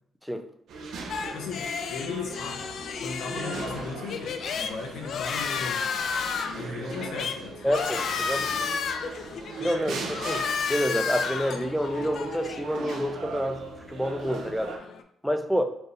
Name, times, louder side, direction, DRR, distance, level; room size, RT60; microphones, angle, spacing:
sound 1, 0.7-14.8, right 4 dB, 75° right, 0.6 m, -39 dB
sound 2, 1.1-15.0, left 5 dB, 65° left, 0.4 m, -33 dB
voice 1, 1.3-2.6 3.0-5.9 6.5-7.6, left 4 dB, 85° left, 2 dB, 0.7 m, -37 dB
voice 2, 7.6-8.5 9.6-14.8 15.2-15.6, equal, ahead, 6 dB, 0.4 m, -28 dB
4.4 x 2.6 x 3.2 m, 0.73 s
cardioid pair, 90°, 0 cm